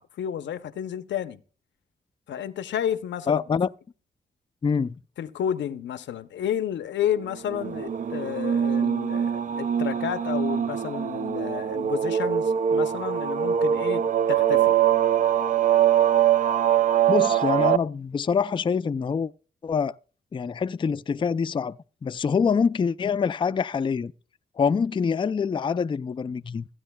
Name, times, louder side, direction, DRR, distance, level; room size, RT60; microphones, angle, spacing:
voice 1, 0.0-1.4 2.3-3.4 5.2-14.8, left 10 dB, 90° left, 0.7 m, -31 dB
voice 2, 3.3-3.7 4.6-5.0 17.1-19.3 19.6-20.0 20.3-24.1 24.6-26.7, left 6 dB, 25° left, 0.4 m, -25 dB
sound 1, 7.5-17.8, right 9 dB, 45° right, 0.4 m, -23 dB
15.5 x 9.2 x 2.2 m
cardioid pair, 75°, 18 cm